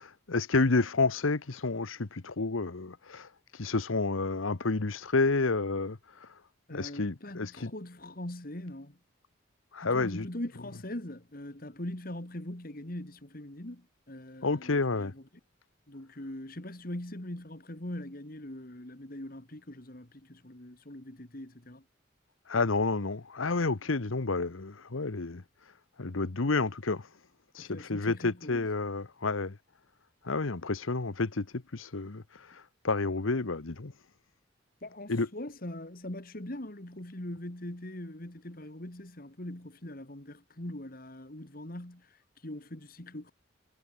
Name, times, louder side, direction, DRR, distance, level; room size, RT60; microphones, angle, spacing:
voice 1, 0.0-3.3 3.6-6.3 6.7-7.7 9.7-10.2 14.4-15.1 22.5-25.4 26.0-27.1 27.5-29.6 30.2-32.2 32.8-33.9 35.1-35.3, left 3 dB, 90° left, 1.1 m, -30 dB
voice 2, 6.7-9.0 9.8-15.3 15.9-21.8 27.6-28.7 34.8-43.3, left 1 dB, 45° left, 2.3 m, -42 dB
head